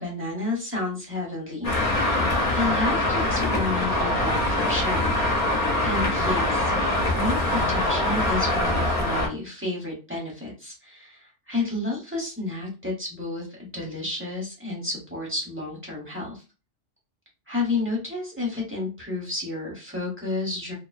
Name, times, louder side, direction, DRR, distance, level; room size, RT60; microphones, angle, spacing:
voice 1, 0.0-2.2 2.5-5.1 5.8-6.7 7.1-16.4 17.5-20.7, left 2 dB, 10° right, -3 dB, 0.8 m, -31 dB
Traffic noise roadway noise, 1.6-9.3, left 1 dB, 40° left, 0.5 m, -23 dB
2.5 x 2.3 x 2.4 m, 0.31 s
omnidirectional pair, 1.4 m